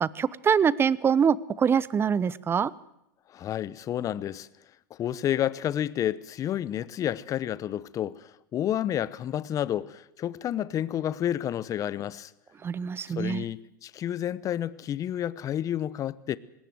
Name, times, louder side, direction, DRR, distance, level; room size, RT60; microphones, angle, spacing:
voice 1, 0.0-2.7 12.6-13.4, right 7 dB, 20° right, 0.8 m, -24 dB
voice 2, 3.3-4.5 4.9-12.3 13.1-16.4, left 11 dB, 30° left, 0.9 m, -30 dB
20.0 x 18.0 x 7.8 m
hypercardioid pair, 105°, 10 cm